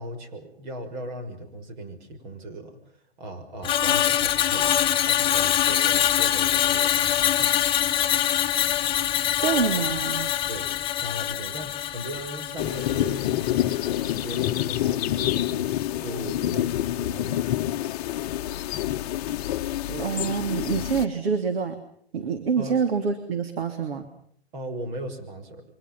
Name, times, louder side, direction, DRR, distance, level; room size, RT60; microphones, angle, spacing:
voice 1, 0.0-2.8 3.2-4.7 5.0-7.8 10.5-17.6 22.6-22.8 24.5-25.6, right 1 dB, 45° right, 8 dB, 6.3 m, -38 dB
Screech, 3.6-14.0 14.3-14.6, left 11 dB, 15° left, 1.4 m, -24 dB
voice 2, 9.3-10.4 19.9-21.7 22.1-24.0, right 6 dB, 65° right, 7 dB, 3.1 m, -26 dB
sound 1, 12.6-21.1, left 13 dB, 35° left, 1.1 m, -27 dB
29.0 x 24.5 x 5.6 m, 0.65 s
hypercardioid pair, 140°, 32 cm